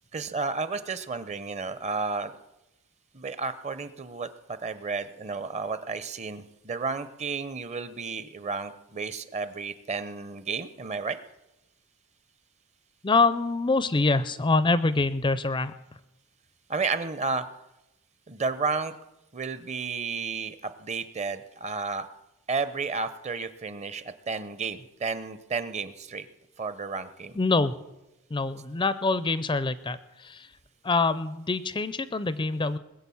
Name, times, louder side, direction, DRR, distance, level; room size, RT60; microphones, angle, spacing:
voice 1, 0.1-2.3 3.1-11.2 16.7-17.4 18.3-18.9 19.3-22.1 22.5-26.3 26.6-27.4, right 4 dB, 30° right, 13 dB, 0.7 m, -32 dB
voice 2, 13.0-15.7 27.4-27.7 28.3-30.5 30.8-32.8, left 3 dB, 20° left, 14 dB, 0.4 m, -25 dB
20.5 x 7.9 x 7.0 m, 0.94 s
head